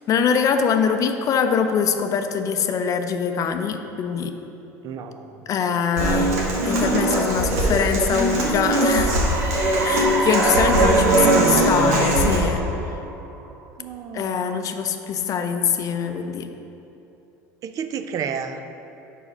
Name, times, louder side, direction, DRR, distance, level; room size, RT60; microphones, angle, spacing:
voice 1, 0.1-4.4 5.5-9.2 9.8-12.6 12.9-13.0 14.1-16.5, left 6 dB, 45° left, 7 dB, 0.5 m, -23 dB
voice 2, 4.8-5.4 10.8-11.7 13.8-14.4 17.6-18.6, right 7 dB, 50° right, 9 dB, 0.4 m, -29 dB
Human voice / Acoustic guitar, 6.0-12.4, right 1 dB, 85° right, 1.3 m, -20 dB
sound 1, 8.9-13.4, right 3 dB, 25° right, 1.1 m, -29 dB
4.9 x 4.8 x 5.5 m, 3.0 s
hypercardioid pair, 85°, 8 cm